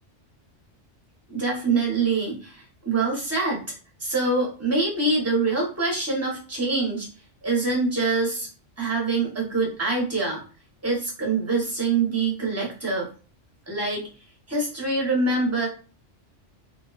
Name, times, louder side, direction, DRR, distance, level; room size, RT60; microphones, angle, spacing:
voice 1, 1.3-3.6 4.0-7.1 7.4-8.5 8.8-10.4 10.8-13.1 13.7-14.1 14.5-15.7, right 3 dB, 15° right, -3 dB, 0.7 m, -25 dB
2.5 x 2.2 x 2.3 m, 0.36 s
omnidirectional pair, 1.2 m